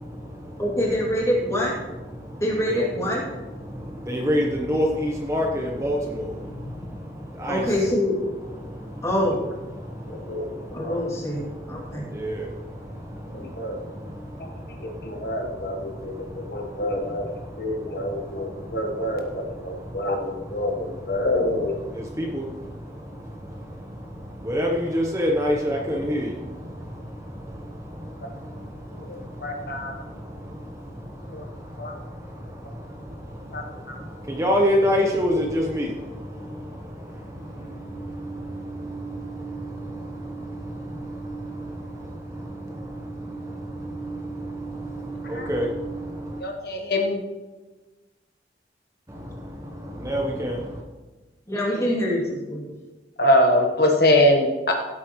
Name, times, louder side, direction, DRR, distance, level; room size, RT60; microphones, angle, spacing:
voice 1, 0.0-46.4 49.1-50.8, equal, 15° right, 0 dB, 1.0 m, -31 dB
voice 2, 0.6-1.7 2.4-3.2 7.5-8.2 9.0-9.4 10.7-12.1 51.5-52.7, equal, 15° left, -4 dB, 2.7 m, -24 dB
voice 3, 10.1-11.0 13.3-13.8 14.4-14.5 14.8-21.8 28.9-29.9 31.3-31.4 31.8-31.9 33.5-34.0 45.4-45.5 46.4-47.2 51.8-51.9 53.2-54.7, left 1 dB, 60° left, 2 dB, 1.3 m, -25 dB
16.5 x 8.4 x 3.1 m, 1.2 s
head